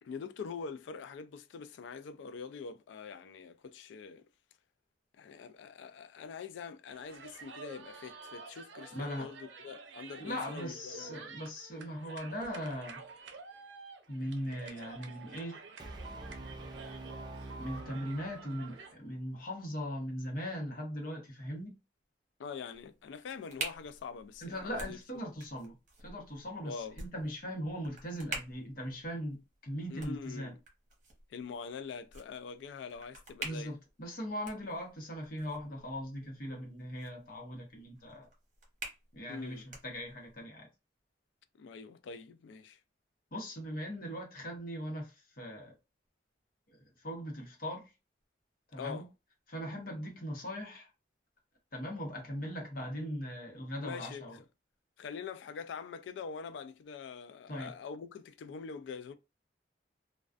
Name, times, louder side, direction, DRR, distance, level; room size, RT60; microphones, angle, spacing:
voice 1, 0.0-4.2 5.2-11.2 22.4-25.0 26.6-27.0 29.9-30.6 31.3-33.7 39.3-39.6 41.6-42.8 48.8-49.1 53.8-54.4 55.0-59.1, left 5 dB, 75° left, 0.3 m, -44 dB
sound 1, 6.9-18.9, right 4 dB, 80° right, 0.5 m, -50 dB
voice 2, 8.9-9.3 10.2-13.0 14.1-15.6 17.6-21.7 24.4-25.7 26.0-30.5 33.4-38.3 39.1-40.7 43.3-45.7 46.7-47.9 48.7-49.0 49.5-50.9 51.7-54.4 57.5-57.7, equal, 50° left, 0.9 m, -39 dB
Brass instrument, 15.8-18.9, right 2 dB, 25° right, 0.4 m, -46 dB
sound 2, 22.7-40.4, right 3 dB, 45° right, 0.9 m, -48 dB
2.3 x 2.2 x 2.4 m
head